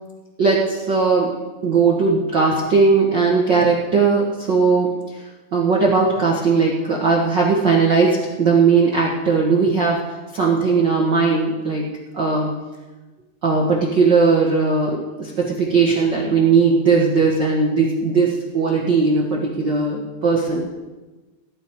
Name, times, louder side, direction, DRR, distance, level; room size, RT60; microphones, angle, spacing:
voice 1, 0.4-5.2 5.5-11.9 12.1-12.5 13.4-20.7, right 4 dB, 85° right, -3 dB, 0.9 m, -18 dB
18.5 x 11.5 x 4.8 m, 1.2 s
omnidirectional pair, 4.9 m